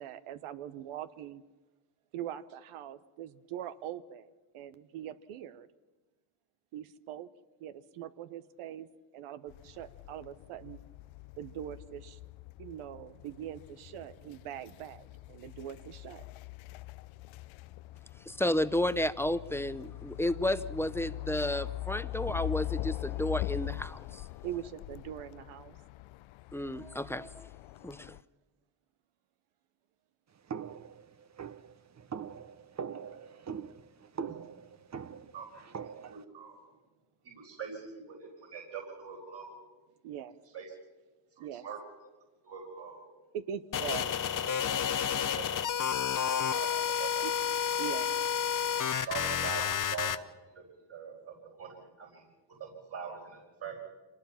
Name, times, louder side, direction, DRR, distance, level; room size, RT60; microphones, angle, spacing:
voice 1, 0.0-1.4 2.1-5.7 6.7-7.3 7.6-8.9 9.1-10.8 11.4-12.2 12.6-16.2 24.4-25.8 40.0-40.5 41.4-41.6 43.3-44.6 47.2-47.3 47.8-48.1, right 10 dB, 80° right, 12 dB, 1.1 m, -42 dB
sound 1, 9.5-28.2, left 18 dB, 70° left, 0.6 m, -42 dB
voice 2, 18.3-24.3 26.5-27.5 27.8-28.2, left 1 dB, 5° left, 13 dB, 0.7 m, -32 dB
sound 2, 30.5-36.2, right 7 dB, 35° right, 0.9 m, -42 dB
voice 3, 35.3-36.6 37.2-39.6 40.5-40.7 41.6-41.8 42.4-43.0 43.8-43.9 44.4-45.0 45.3-45.5 46.3-46.7 47.0-47.1 49.0-50.1 50.5-52.2 52.5-53.8, right 6 dB, 55° right, -3 dB, 4.8 m, -43 dB
sound 3, 43.7-50.2, left 8 dB, 40° left, 0.9 m, -30 dB
25.0 x 19.0 x 5.8 m, 1.2 s
cardioid pair, 80°, 50 cm